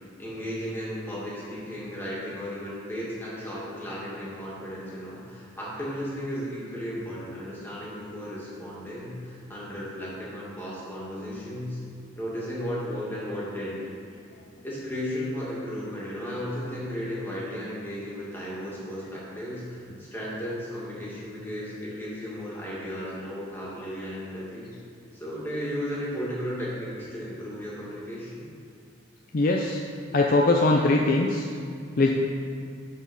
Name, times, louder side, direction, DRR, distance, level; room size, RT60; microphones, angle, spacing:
voice 1, 0.0-11.8 12.2-13.9 14.6-24.7 25.1-28.5, equal, 10° left, -7 dB, 2.0 m, -35 dB
voice 2, 29.3-29.8 30.1-31.5 32.0-32.1, left 2 dB, 45° left, 0 dB, 0.5 m, -21 dB
10.5 x 4.4 x 5.3 m, 2.3 s
head